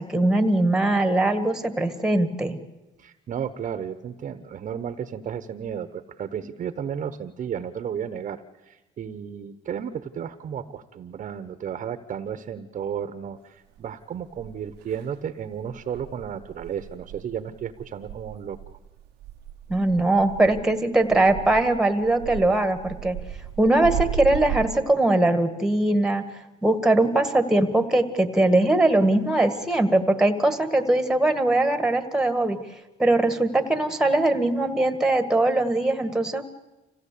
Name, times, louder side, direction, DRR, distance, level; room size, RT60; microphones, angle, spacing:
voice 1, 0.0-2.6 19.7-23.2 23.6-26.2 26.6-32.6 33.0-36.4, right 2 dB, 5° right, 8 dB, 1.8 m, -21 dB
voice 2, 3.0-18.6, right 8 dB, 45° right, 11 dB, 1.1 m, -33 dB
sound 1, 13.8-13.9 14.3-15.0 15.5-24.7, right 11 dB, 85° right, 1.0 m, -35 dB
26.0 x 16.5 x 8.5 m, 1.1 s
cardioid pair, 110°, 17 cm